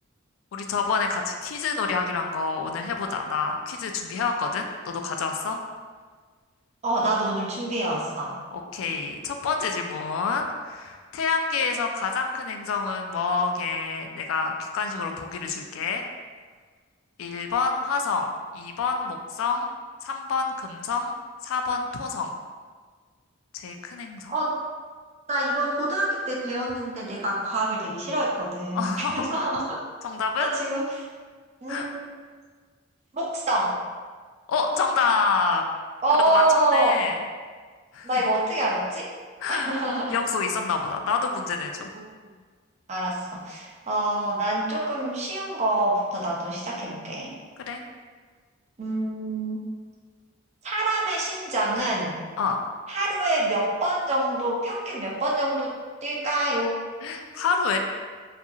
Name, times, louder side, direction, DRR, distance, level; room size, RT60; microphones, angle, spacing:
voice 1, 0.5-5.6 8.5-16.0 17.2-18.3 18.5-19.7 20.0-21.1 21.4-22.3 23.5-24.3 28.7-29.3 30.0-30.5 31.7-31.9 34.5-35.7 36.3-37.2 37.9-38.2 39.4-39.7 40.1-41.9 47.6-47.8 52.4-52.6 57.0-57.8, left 4 dB, 75° left, 5 dB, 0.3 m, -27 dB
voice 2, 6.8-8.4 24.3-24.6 25.3-29.8 30.4-31.0 31.6-32.1 33.1-33.8 36.0-37.0 38.0-39.1 39.5-40.2 41.9-42.0 42.9-47.3 48.8-49.6 50.6-52.2 52.9-55.7 56.0-56.8, right 1 dB, 35° right, -3 dB, 0.5 m, -26 dB
2.7 x 2.4 x 2.3 m, 1.5 s
head